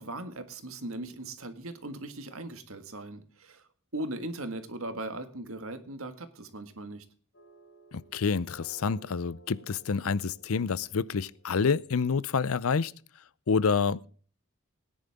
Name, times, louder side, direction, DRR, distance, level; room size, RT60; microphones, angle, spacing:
voice 1, 0.0-3.6 3.9-7.1, right 2 dB, 70° right, 1.8 m, -39 dB
sound 1, 7.3-12.4, right 1 dB, 55° left, 4.7 m, -56 dB
voice 2, 7.9-13.0 13.5-14.1, left 5 dB, 75° left, 0.5 m, -28 dB
18.5 x 10.5 x 3.5 m
head